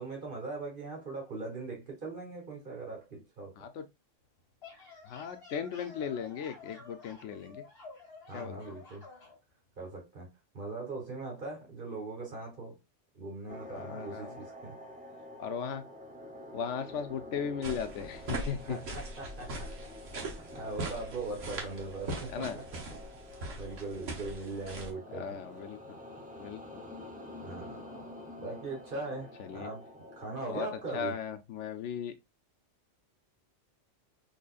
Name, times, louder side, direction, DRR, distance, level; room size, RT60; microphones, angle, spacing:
voice 1, 0.0-3.5 8.3-9.1 9.8-10.3 10.5-12.8 13.1-14.8 18.6-19.7 20.3-25.4 27.4-29.9 30.1-31.2, right 3 dB, 45° right, 1.4 m, -40 dB
sound 1, 4.4-9.4, left 4 dB, 55° left, 1.7 m, -51 dB
voice 2, 5.1-7.6 8.3-8.6 13.7-14.4 15.4-15.8 16.5-18.8 22.3-22.6 25.1-25.8 26.4-26.6 29.4-29.7 30.5-32.1, left 7 dB, 75° left, 0.9 m, -37 dB
sound 2, 13.5-30.5, left 1 dB, 10° right, 0.4 m, -48 dB
sound 3, 17.6-24.9, right 2 dB, 80° right, 1.4 m, -41 dB
4.0 x 3.0 x 2.4 m
omnidirectional pair, 1.3 m